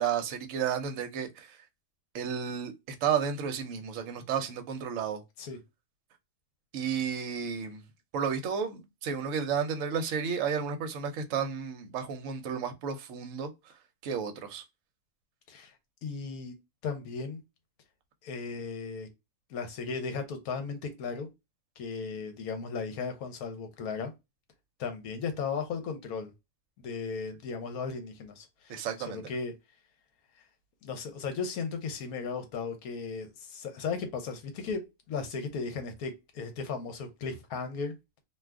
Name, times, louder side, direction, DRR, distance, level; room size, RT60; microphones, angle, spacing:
voice 1, 0.0-1.6 2.1-2.7 3.0-5.2 6.7-7.8 8.1-13.5 14.0-14.6 28.7-29.2, right 7 dB, 65° right, 0.9 m, -32 dB
voice 2, 16.0-16.5 16.8-17.4 18.2-19.1 19.5-21.3 21.8-24.1 24.8-26.3 26.8-29.5 30.8-37.9, left 5 dB, 75° left, 1.2 m, -36 dB
2.6 x 2.4 x 3.3 m
omnidirectional pair, 1.6 m